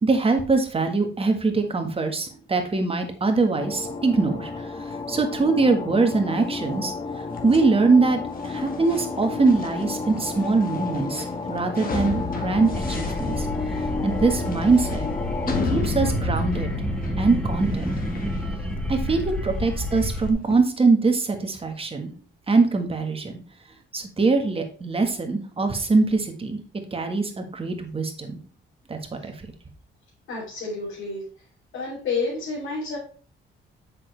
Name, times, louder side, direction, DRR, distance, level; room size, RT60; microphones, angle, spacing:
voice 1, 0.0-4.7 5.1-6.9 7.4-13.5 14.0-15.1 15.7-16.7 17.2-17.9 18.9-22.1 22.5-23.4 23.9-26.6 26.9-28.4 28.9-29.3, right 3 dB, 30° right, 5 dB, 1.5 m, -22 dB
sound 1, 3.5-15.7, left 4 dB, 25° left, 0.8 m, -32 dB
sound 2, 7.3-20.6, left 3 dB, 45° left, 1.7 m, -33 dB
sound 3, 12.7-20.3, left 1 dB, 5° left, 1.4 m, -30 dB
voice 2, 30.3-31.2 31.7-33.0, left 3 dB, 80° left, -6 dB, 3.3 m, -29 dB
7.5 x 6.3 x 3.3 m, 0.41 s
cardioid pair, 90°, 20 cm